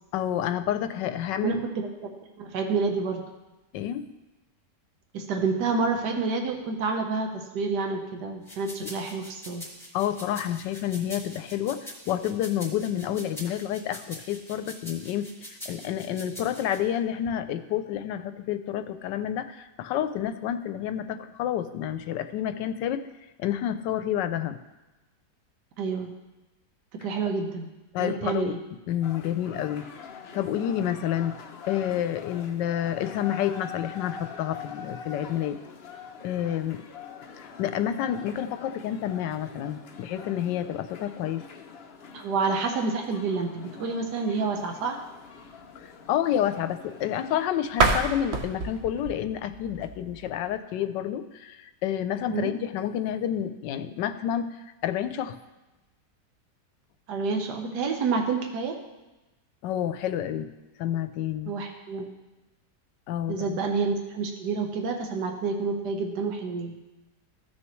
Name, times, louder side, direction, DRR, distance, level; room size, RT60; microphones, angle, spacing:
voice 1, 0.1-1.6 3.7-4.0 8.8-8.9 9.9-23.0 23.4-24.6 27.9-28.5 28.9-29.9 30.3-31.4 31.7-35.6 36.2-36.8 37.4-41.4 46.1-54.5 54.8-55.4 59.6-60.5 60.8-61.5 63.1-63.6, left 10 dB, 90° left, 10 dB, 1.3 m, -29 dB
voice 2, 1.4-2.1 2.4-3.2 5.1-9.6 25.8-26.1 27.0-27.7 28.0-28.6 42.1-45.0 52.3-52.5 57.1-58.8 61.5-62.0 63.3-66.7, right 4 dB, 70° right, 3 dB, 1.6 m, -28 dB
sound 1, 8.5-16.8, equal, ahead, 1.8 m, -43 dB
sound 2, 29.0-47.5, left 6 dB, 65° left, 0.6 m, -44 dB
sound 3, 47.7-50.6, right 3 dB, 50° right, 0.8 m, -28 dB
15.0 x 6.4 x 3.1 m, 1.1 s
omnidirectional pair, 1.9 m